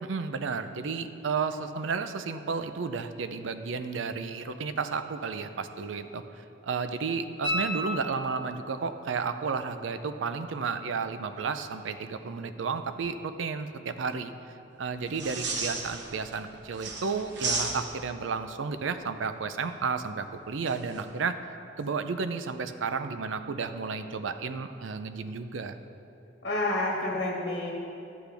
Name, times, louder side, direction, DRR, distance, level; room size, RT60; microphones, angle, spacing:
voice 1, 0.0-14.3 14.8-21.4 21.8-25.8, right 5 dB, 85° right, 10 dB, 0.5 m, -32 dB
sound 1, 7.4-8.8 11.6-11.7, equal, 45° right, 2.3 m, -32 dB
sound 2, 15.1-16.4 16.7-18.2 20.7-21.0, right 3 dB, 65° right, 1.1 m, -33 dB
voice 2, 26.4-27.7, left 2 dB, 60° left, -3 dB, 1.5 m, -29 dB
11.5 x 8.2 x 3.4 m, 2.6 s
head